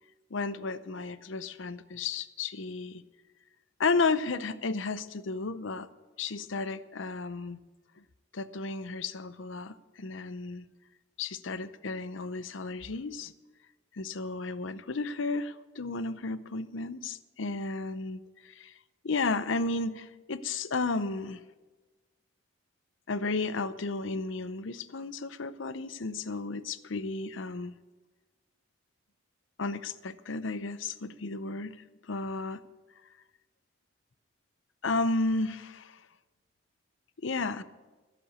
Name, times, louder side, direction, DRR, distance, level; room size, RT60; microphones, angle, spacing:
voice 1, 0.3-3.0 3.8-5.9 6.2-7.6 8.3-10.7 11.2-13.3 13.9-18.7 19.0-21.4 23.1-27.7 29.6-31.8 32.1-32.6 34.8-36.0 37.2-37.6, left 3 dB, 70° left, 14 dB, 0.7 m, -33 dB
14.0 x 7.7 x 8.3 m, 1.2 s
head